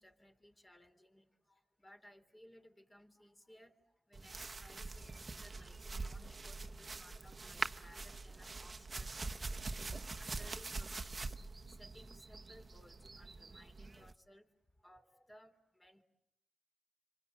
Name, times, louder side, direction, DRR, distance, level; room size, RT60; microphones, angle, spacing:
voice 1, 0.0-9.5 9.9-16.0, equal, 20° left, 5 dB, 3.9 m, -62 dB
sound 1, 4.1-14.1, right 3 dB, 35° right, 1.3 m, -44 dB
27.0 x 25.5 x 8.7 m, 0.83 s
supercardioid pair, 50°, 0 cm